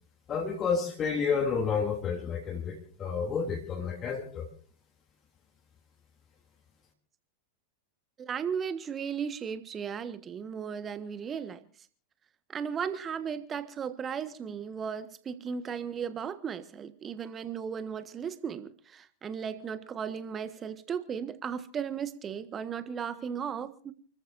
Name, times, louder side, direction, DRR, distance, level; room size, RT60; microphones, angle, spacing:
voice 1, 0.3-4.5, left 5 dB, 25° left, 0 dB, 3.1 m, -30 dB
voice 2, 8.2-11.7 12.5-23.9, right 7 dB, 25° right, 12 dB, 1.5 m, -36 dB
29.5 x 14.0 x 2.7 m, 0.43 s
figure-of-eight pair, 90°, 0 cm